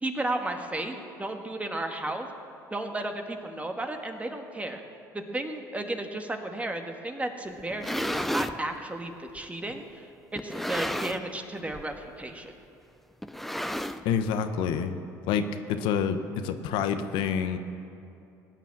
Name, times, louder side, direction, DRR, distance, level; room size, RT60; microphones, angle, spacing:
voice 1, 0.0-2.3 2.7-4.8 5.1-10.1 10.3-12.5, right 2 dB, 15° right, 5 dB, 1.8 m, -34 dB
sound 1, 7.6-8.6 9.4-9.5 10.4-11.4 11.7-12.0 12.2-12.3 13.2-14.3, equal, ahead, 0.7 m, -32 dB
voice 2, 14.0-15.0 15.3-16.2 16.4-17.6, left 7 dB, 70° left, 8 dB, 1.0 m, -27 dB
18.0 x 9.3 x 7.3 m, 2.7 s
supercardioid pair, 75°, 9 cm